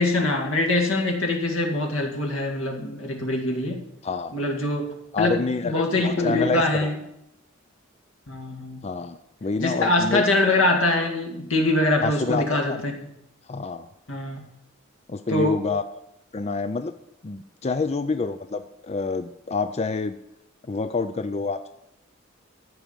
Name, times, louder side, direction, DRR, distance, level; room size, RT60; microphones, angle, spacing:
voice 1, 0.0-3.8 4.3-7.0 8.3-8.8 9.6-12.9 14.1-14.4 15.3-15.6, left 2 dB, 85° left, 2 dB, 2.3 m, -23 dB
voice 2, 4.0-4.3 5.1-6.9 8.8-10.2 12.0-12.8 13.5-13.9 15.1-15.8 16.3-16.9 17.2-20.2 20.7-21.7, left 4 dB, 30° left, 10 dB, 0.5 m, -27 dB
14.0 x 4.9 x 8.9 m, 0.81 s
head